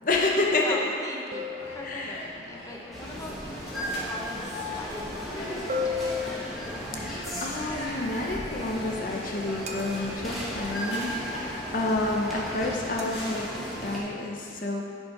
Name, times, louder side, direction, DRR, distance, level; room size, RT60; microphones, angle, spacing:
voice 1, 0.0-0.8 1.8-2.2 6.9-14.9, left 2 dB, 50° left, -1 dB, 0.7 m, -29 dB
voice 2, 0.6-6.6, left 1 dB, 20° left, -1 dB, 0.8 m, -41 dB
sound 1, 1.3-2.4 5.7-7.1 9.7-10.4 13.0-13.3, left 4 dB, 40° right, 0.7 m, -34 dB
sound 2, 1.6-13.9, left 1 dB, 70° left, 1.7 m, -42 dB
sound 3, 2.9-14.0, equal, ahead, 1.6 m, -36 dB
10.5 x 5.3 x 4.7 m, 2.7 s
head